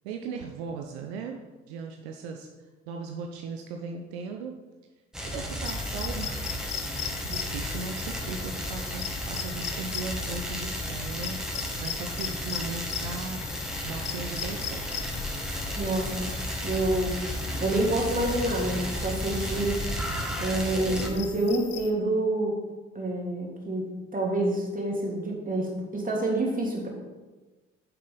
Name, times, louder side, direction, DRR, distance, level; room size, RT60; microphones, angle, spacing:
voice 1, 0.0-1.4 1.7-2.5 2.9-4.5 5.3-6.4 7.0-13.4 13.8-15.2, right 5 dB, 70° right, 3 dB, 0.8 m, -38 dB
sound 1, 5.1-21.1, equal, ahead, 2.0 m, -34 dB
sound 2, 5.6-21.9, left 9 dB, 50° left, 1.0 m, -39 dB
sound 3, 13.8-19.8, right 3 dB, 55° right, 1.9 m, -44 dB
voice 2, 15.7-16.3 16.6-17.2 17.6-19.8 20.4-22.5 22.9-26.9, right 1 dB, 25° right, -1 dB, 2.9 m, -27 dB
10.5 x 7.4 x 3.9 m, 1.2 s
figure-of-eight pair, 45°, 32 cm